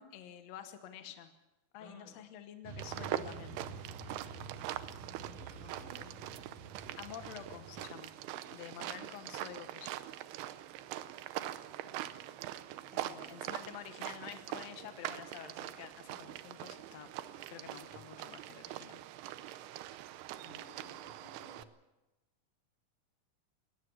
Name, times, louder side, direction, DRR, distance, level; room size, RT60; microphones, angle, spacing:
voice 1, 0.0-1.3 1.7-3.6 7.0-8.1 8.5-10.0 12.9-17.1 17.5-19.6, left 10 dB, 70° left, 8 dB, 1.6 m, -49 dB
voice 2, 1.8-2.2 4.6-4.7 5.2-6.2 8.4-8.6 17.9-18.1 20.4-21.7, left 1 dB, 50° left, -1 dB, 6.0 m, -57 dB
Motorcycle / Traffic noise roadway noise, 2.6-7.9, right 3 dB, 55° right, 2.6 m, -49 dB
sound 1, 2.8-21.6, right 13 dB, 80° right, 2.7 m, -43 dB
20.0 x 19.0 x 7.0 m, 1.0 s
omnidirectional pair, 4.7 m